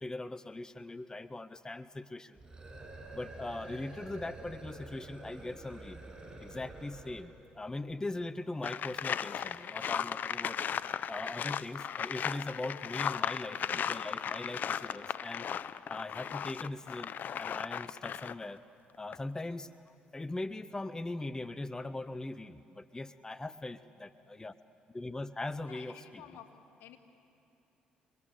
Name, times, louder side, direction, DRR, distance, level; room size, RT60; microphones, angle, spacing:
voice 1, 0.0-2.4 3.1-6.0 6.4-10.6 11.1-15.5 15.9-17.1 17.4-18.6 19.0-24.5 24.9-26.2, left 2 dB, 20° left, 14 dB, 0.8 m, -40 dB
sound 1, 2.3-7.4, right 2 dB, 25° right, 6.8 m, -48 dB
sound 2, 8.6-18.5 18.9-19.2, left 8 dB, 55° left, 0.7 m, -36 dB
voice 2, 9.1-10.1 12.6-15.8 25.6-27.0, left 9 dB, 75° left, 4 dB, 2.1 m, -54 dB
28.5 x 22.0 x 8.1 m, 2.9 s
supercardioid pair, 60°, 4 cm